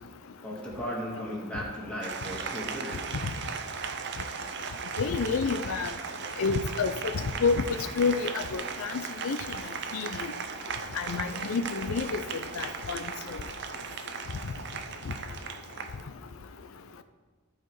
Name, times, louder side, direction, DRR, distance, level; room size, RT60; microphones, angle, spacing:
voice 1, 0.4-3.0, equal, 5° left, -5 dB, 2.0 m, -36 dB
Applause, 2.0-16.0, right 6 dB, 55° right, 0.6 m, -37 dB
voice 2, 5.0-5.9 6.4-6.9 7.4-7.6 8.0-8.9 9.2-9.4 9.9-10.1 11.0-12.2 12.6-13.0, left 5 dB, 80° left, 9 dB, 0.5 m, -28 dB
14.5 x 4.9 x 4.6 m, 1.4 s
head